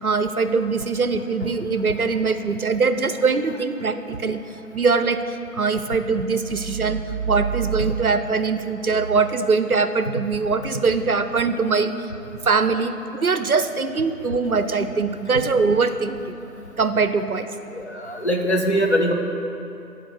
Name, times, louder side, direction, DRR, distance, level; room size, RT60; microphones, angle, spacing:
voice 1, 0.0-4.4 4.7-11.9 12.4-16.4 16.8-17.5, right 4 dB, 65° right, 10 dB, 0.7 m, -22 dB
voice 2, 17.7-19.1, equal, 45° left, 3 dB, 1.0 m, -22 dB
16.0 x 5.3 x 6.9 m, 2.7 s
figure-of-eight pair, 165°, 48 cm